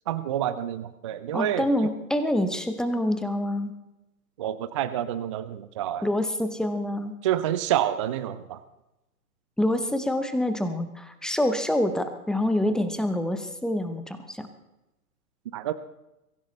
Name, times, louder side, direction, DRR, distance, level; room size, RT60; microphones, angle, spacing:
voice 1, 0.1-1.9 4.4-6.1 7.2-8.6 15.5-15.7, right 11 dB, 20° right, 12 dB, 0.4 m, -28 dB
voice 2, 1.3-3.7 6.0-7.1 9.6-14.5, left 1 dB, ahead, 9 dB, 0.8 m, -26 dB
23.0 x 15.0 x 3.2 m, 0.95 s
figure-of-eight pair, 115°, 45 cm